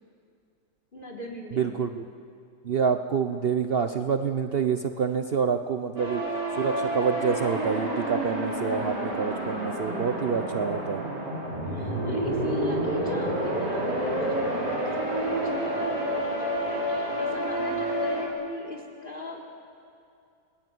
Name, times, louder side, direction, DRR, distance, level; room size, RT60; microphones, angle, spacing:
voice 1, 0.9-1.9 11.6-19.5, left 2 dB, 25° left, -1 dB, 3.9 m, -40 dB
voice 2, 1.5-2.0 2.6-6.2 6.6-11.0, right 6 dB, 80° right, 7 dB, 0.5 m, -27 dB
sound 1, 6.0-18.2, right 1 dB, 50° right, 5.6 m, -29 dB
29.0 x 20.0 x 9.5 m, 2.4 s
omnidirectional pair, 2.3 m